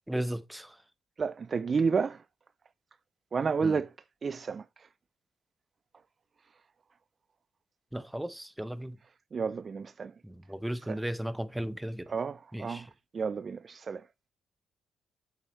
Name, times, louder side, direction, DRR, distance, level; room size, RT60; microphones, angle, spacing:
voice 1, 0.1-0.7 3.6-3.8 7.9-9.0 10.2-12.1 12.5-12.9, right 1 dB, 5° right, 0.8 m, -35 dB
voice 2, 1.2-2.2 3.3-3.9 4.2-4.6 9.3-10.1 10.9-11.0 12.1-12.9 13.1-14.0, right 5 dB, 40° right, 0.3 m, -30 dB
8.4 x 7.4 x 3.1 m
cardioid pair, 90°, 0 cm